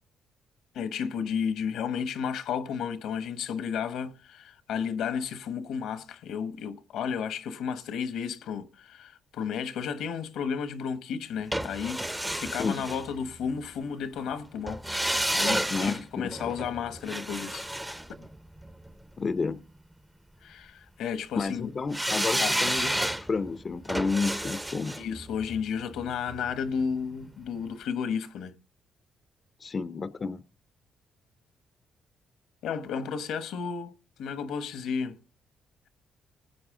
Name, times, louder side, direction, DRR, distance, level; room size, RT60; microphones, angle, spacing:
voice 1, 0.7-12.0 12.3-17.7 18.2-18.3 20.4-21.7 22.4-22.6 25.0-28.5 32.6-35.2, left 7 dB, 85° left, 1.1 m, -33 dB
sound 1, 11.5-13.6 14.7-18.9 21.9-26.9 27.2-27.3, right 1 dB, 10° right, 0.6 m, -31 dB
voice 2, 15.7-16.3 19.2-19.6 21.4-25.0 29.6-30.4, left 4 dB, 40° left, 0.5 m, -31 dB
19.5 x 8.0 x 3.7 m
cardioid pair, 90°, 0 cm